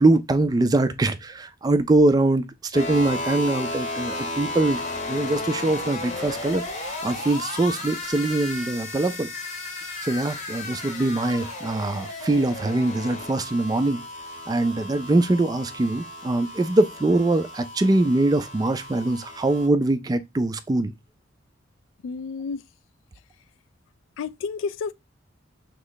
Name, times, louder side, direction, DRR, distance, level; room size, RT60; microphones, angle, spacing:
voice 1, 0.0-4.8 5.1-6.6 7.0-9.3 10.0-14.0 14.5-20.9, right 2 dB, 20° right, 0.3 m, -23 dB
sound 1, 2.7-19.7, left 2 dB, 40° left, 0.9 m, -34 dB
voice 2, 22.0-22.6 24.2-24.9, left 5 dB, 75° left, 0.3 m, -30 dB
3.1 x 3.0 x 3.8 m
head